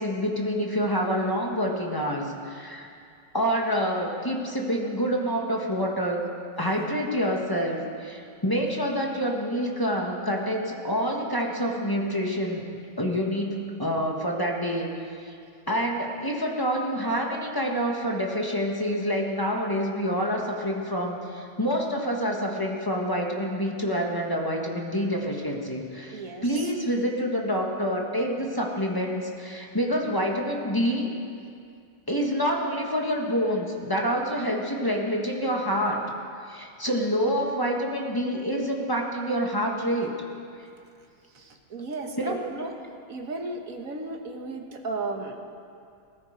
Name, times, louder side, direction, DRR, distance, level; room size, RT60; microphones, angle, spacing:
voice 1, 0.0-2.9 3.3-12.6 13.0-15.3 15.7-31.1 32.1-36.0 36.4-40.1 40.6-40.7 42.2-42.4, equal, 10° left, -1 dB, 1.3 m, -27 dB
voice 2, 26.1-26.7 41.3-42.8 43.1-45.4, right 3 dB, 45° right, 3 dB, 1.5 m, -35 dB
20.0 x 13.5 x 5.2 m, 2.4 s
omnidirectional pair, 2.3 m